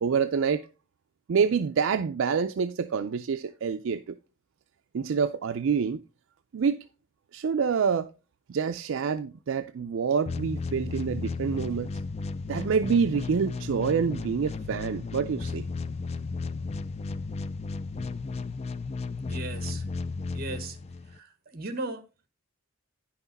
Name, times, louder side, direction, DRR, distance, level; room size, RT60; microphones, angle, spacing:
voice 1, 0.0-0.6 1.3-4.2 4.9-6.0 6.5-6.8 7.3-8.1 8.5-11.9 12.5-15.7, right 6 dB, 70° right, 0.4 m, -27 dB
sound 1, 10.3-21.2, left 4 dB, 30° left, 0.3 m, -34 dB
voice 2, 19.3-19.8 20.3-20.8 21.1-22.0, right 2 dB, 45° right, 1.2 m, -37 dB
9.7 x 5.9 x 4.0 m
head